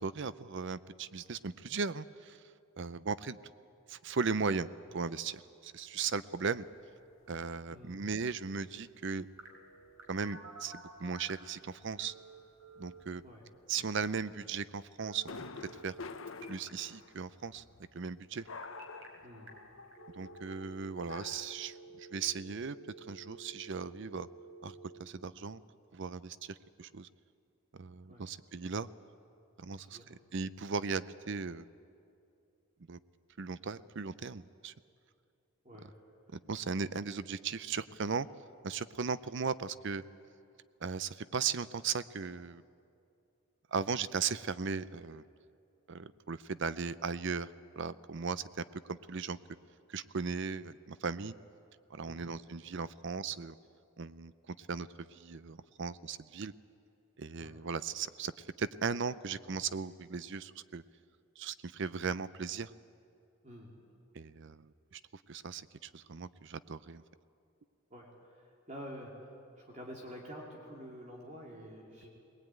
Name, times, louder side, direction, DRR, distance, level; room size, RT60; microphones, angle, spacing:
voice 1, 0.0-2.4 2.8-3.4 3.9-6.7 7.3-9.3 10.1-12.1 12.8-13.2 13.7-15.2 15.8-15.9 16.5-17.6 17.9-18.4 20.1-24.3 24.6-25.6 25.9-27.1 27.7-28.9 29.6-31.7 32.9-33.0 33.4-34.7 36.3-38.3 38.6-40.0 40.8-42.6 43.7-45.2 45.9-47.5 47.8-49.4 49.9-51.3 51.9-53.6 54.0-56.5 57.2-60.8 61.4-62.7 64.1-65.0 65.3-67.0, right 5 dB, 55° right, 15 dB, 0.6 m, -37 dB
sound 1, 6.6-6.8 7.1-7.4 7.6-9.9 10.3-10.6 10.9-11.1 11.4-11.5 11.8-14.7 15.3-18.0 18.4-21.5, left 4 dB, 65° left, 0.9 m, -49 dB
voice 2, 7.7-8.0 13.2-13.4 19.2-19.5 28.1-28.2 29.7-30.2 35.6-36.0 52.0-52.3 57.4-57.5 63.4-63.7 67.9-72.1, equal, 35° right, -2 dB, 2.9 m, -48 dB
Telephone, 9.4-11.5 12.0-13.0 15.0-16.0 16.3-16.7 18.4-19.1 19.5-19.6 19.9-25.0, right 3 dB, 75° right, 3.7 m, -52 dB
21.5 x 19.5 x 9.2 m, 2.5 s
head